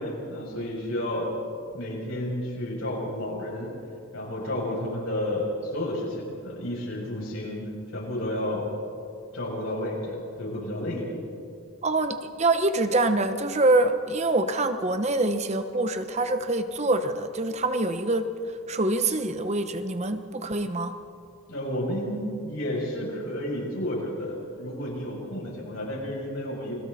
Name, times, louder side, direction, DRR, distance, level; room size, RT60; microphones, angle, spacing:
voice 1, 0.0-1.4 1.7-3.8 4.1-8.7 9.3-11.2 21.5-26.8, left 1 dB, 70° left, -4 dB, 7.3 m, -31 dB
voice 2, 11.8-18.3 18.7-20.9, right 2 dB, 30° right, 9 dB, 0.9 m, -25 dB
29.5 x 21.5 x 4.2 m, 2.4 s
head